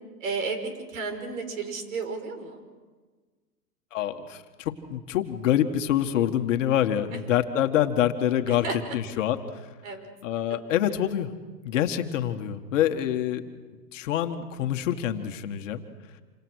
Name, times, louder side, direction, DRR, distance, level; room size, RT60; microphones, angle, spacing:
voice 1, 0.2-2.6 8.5-8.8 9.8-10.1, right 4 dB, 55° right, 7 dB, 5.9 m, -32 dB
voice 2, 3.9-8.7 8.9-9.4 10.2-11.3 11.6-13.5 13.9-15.8, left 11 dB, 50° left, 6 dB, 1.9 m, -26 dB
28.0 x 26.5 x 6.5 m, 1.4 s
hypercardioid pair, 145°, 48 cm